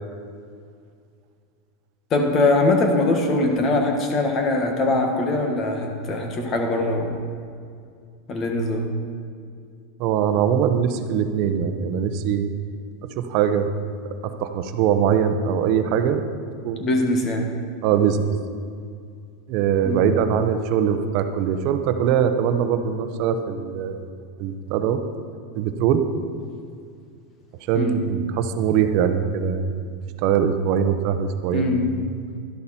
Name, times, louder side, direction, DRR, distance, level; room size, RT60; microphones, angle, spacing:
voice 1, 2.1-7.1 8.3-8.9 16.8-17.5 19.8-20.1 27.7-28.0 31.5-32.2, left 2 dB, 30° left, 3 dB, 1.6 m, -22 dB
voice 2, 10.0-12.5 13.2-13.7 14.0-16.3 16.6-16.9 17.8-18.3 19.5-24.0 24.4-25.0 25.5-26.0 27.7-29.8 30.2-31.7, right 8 dB, 50° right, 8 dB, 0.9 m, -22 dB
12.0 x 11.5 x 4.4 m, 2.3 s
supercardioid pair, 145°, 0 cm